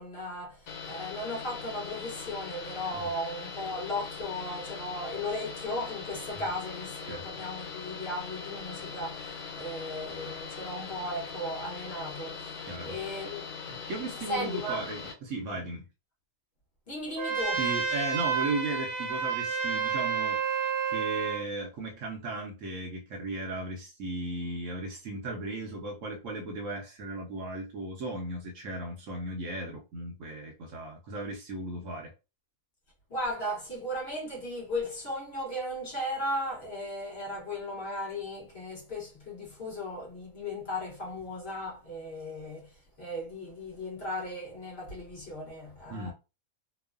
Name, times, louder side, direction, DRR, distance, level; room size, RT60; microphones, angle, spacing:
voice 1, 0.0-13.4 14.3-14.8 16.9-17.6 33.1-46.1, left 1 dB, 50° left, 1.0 m, -36 dB
sound 1, 0.7-15.1, left 5 dB, 85° left, 1.2 m, -41 dB
voice 2, 7.1-7.4 12.7-13.0 13.6-15.8 17.6-32.1 45.9-46.1, right 2 dB, 65° right, 0.9 m, -36 dB
Trumpet, 17.2-21.5, right 6 dB, 85° right, 1.2 m, -30 dB
3.0 x 2.0 x 2.3 m
omnidirectional pair, 1.6 m